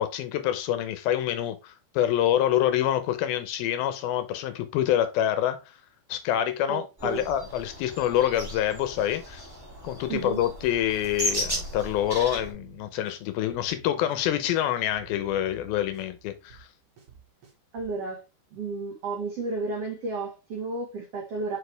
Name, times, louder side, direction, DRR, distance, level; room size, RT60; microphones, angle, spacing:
voice 1, 0.0-5.8 6.1-9.5 9.8-16.7, left 11 dB, 80° left, 2.2 m, -26 dB
voice 2, 6.7-7.2 10.1-10.4 17.7-18.2 18.5-21.6, right 3 dB, 75° right, 1.4 m, -32 dB
sound 1, 7.0-12.5, equal, 20° right, 0.5 m, -35 dB
sound 2, 12.3-18.0, right 8 dB, 55° right, 1.8 m, -52 dB
6.4 x 4.8 x 3.4 m
omnidirectional pair, 5.0 m